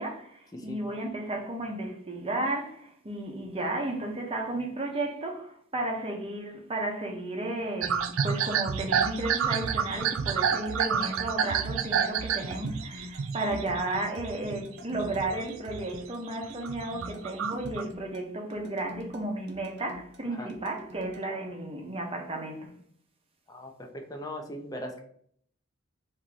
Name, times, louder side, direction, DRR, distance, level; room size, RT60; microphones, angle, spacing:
voice 1, 0.0-22.7, right 2 dB, 30° right, 0.8 m, -33 dB
sound 1, 7.8-14.6 14.9-16.0 16.4-17.8, right 7 dB, 75° right, 0.4 m, -29 dB
sound 2, 9.5-21.2, left 1 dB, 55° right, 0.8 m, -48 dB
voice 2, 23.5-25.0, left 1 dB, 20° left, 0.6 m, -39 dB
3.6 x 2.7 x 4.7 m
head